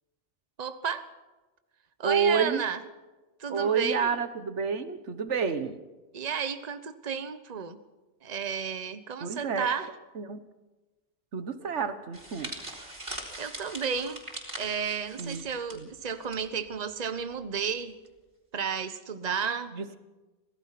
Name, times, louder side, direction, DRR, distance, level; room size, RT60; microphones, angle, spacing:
voice 1, 0.6-1.1 2.0-2.8 3.4-4.1 6.1-7.8 8.2-9.9 13.4-14.2 14.6-17.9 18.5-19.7, right 6 dB, 35° right, 11 dB, 1.1 m, -32 dB
voice 2, 2.0-2.6 3.5-5.8 9.2-9.7 10.1-10.4 11.3-12.5 15.2-15.4 15.7-15.9 19.7-20.0, right 6 dB, 85° right, 11 dB, 1.6 m, -29 dB
sound 1, 12.1-16.4 16.7-16.9 17.8-18.1, right 1 dB, 55° right, 4.8 m, -41 dB
26.0 x 18.0 x 5.9 m, 1.2 s
omnidirectional pair, 1.2 m